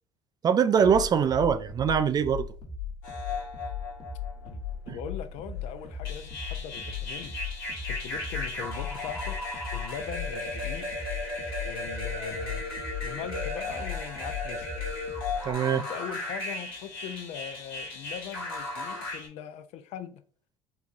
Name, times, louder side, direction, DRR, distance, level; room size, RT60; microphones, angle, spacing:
voice 1, 0.4-2.5 4.9-5.0 15.5-15.8, right 7 dB, 35° right, 0.3 m, -23 dB
sound 1, 0.8-15.5, left 6 dB, 35° left, 1.1 m, -38 dB
sound 2, 3.0-4.7 5.5-19.3, left 2 dB, 85° left, 1.3 m, -36 dB
voice 2, 4.9-7.3 7.9-9.4 9.7-10.9 11.6-12.7 13.0-14.7 15.7-20.2, left 9 dB, 60° left, 0.4 m, -40 dB
4.1 x 2.3 x 2.5 m
hypercardioid pair, 75°, 12 cm